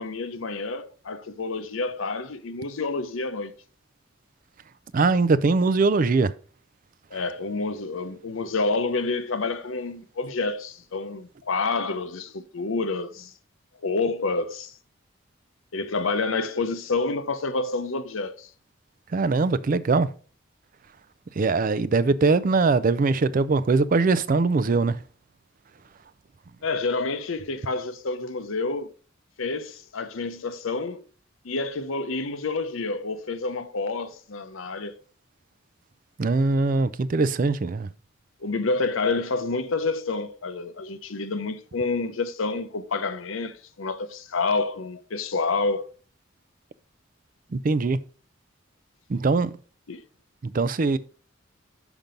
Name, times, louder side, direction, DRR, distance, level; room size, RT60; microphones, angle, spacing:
voice 1, 0.0-3.5 7.1-13.3 13.8-14.7 15.7-18.5 26.6-28.9 29.4-31.0 31.4-34.9 38.4-45.9 49.9-50.0, left 3 dB, 80° left, 0.8 m, -28 dB
voice 2, 4.9-6.3 7.1-7.2 19.1-20.1 21.3-25.0 36.2-37.9 47.5-48.0 49.1-49.5 50.4-51.0, right 3 dB, 45° right, 0.4 m, -22 dB
6.0 x 5.3 x 5.1 m
head